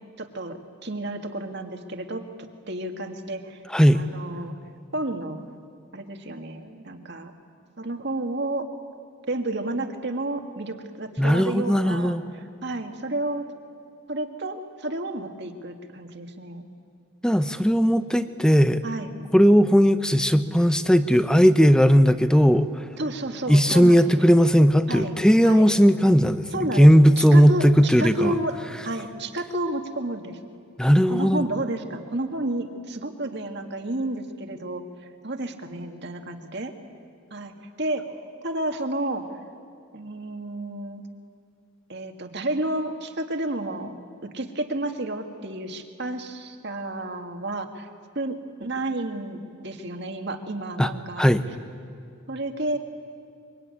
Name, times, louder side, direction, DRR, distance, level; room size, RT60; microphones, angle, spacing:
voice 1, 0.2-2.2 2.7-3.6 3.9-4.6 4.9-5.5 5.9-7.3 7.8-8.7 9.3-12.2 12.6-13.4 14.1-16.7 18.8-19.1 23.0-24.3 24.9-25.2 25.4-25.7 26.5-28.6 28.8-30.4 31.1-34.8 35.2-36.7 37.3-39.2 39.9-41.0 41.9-43.9 44.2-47.9 48.2-51.2 52.3-52.8, right 1 dB, 55° right, 5 dB, 2.0 m, -31 dB
voice 2, 3.7-4.0 11.2-12.2 17.2-18.8 19.3-22.8 23.5-28.4 30.8-31.5 50.8-50.9 51.2-51.4, equal, 5° left, 11 dB, 0.8 m, -17 dB
25.0 x 24.0 x 9.8 m, 2.3 s
head